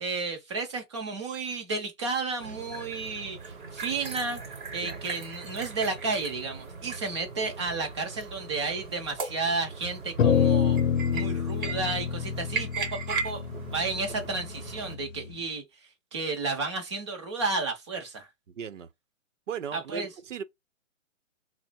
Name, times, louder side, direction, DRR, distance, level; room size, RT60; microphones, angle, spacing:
voice 1, 0.0-4.4 4.7-10.8 11.1-13.4 13.7-15.6 16.1-18.3 19.7-20.1, right 3 dB, 20° right, 0.6 m, -32 dB
sound 1, 2.4-14.9, right 4 dB, 40° right, 1.0 m, -38 dB
sound 2, 10.2-14.7, left 7 dB, 75° left, 0.7 m, -26 dB
voice 2, 18.5-18.9 19.5-20.4, right 8 dB, 70° right, 0.7 m, -37 dB
3.6 x 2.0 x 4.3 m
hypercardioid pair, 160°, 39 cm